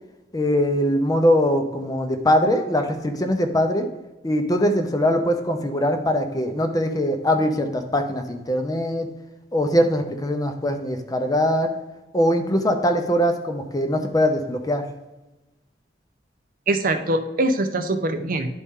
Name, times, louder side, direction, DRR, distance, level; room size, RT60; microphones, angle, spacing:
voice 1, 0.3-3.8 4.2-9.1 9.5-11.7 12.1-14.8, equal, 20° left, 6 dB, 0.6 m, -22 dB
voice 2, 16.7-18.5, right 2 dB, 50° right, 7 dB, 0.6 m, -23 dB
11.0 x 4.2 x 3.6 m, 1.0 s
head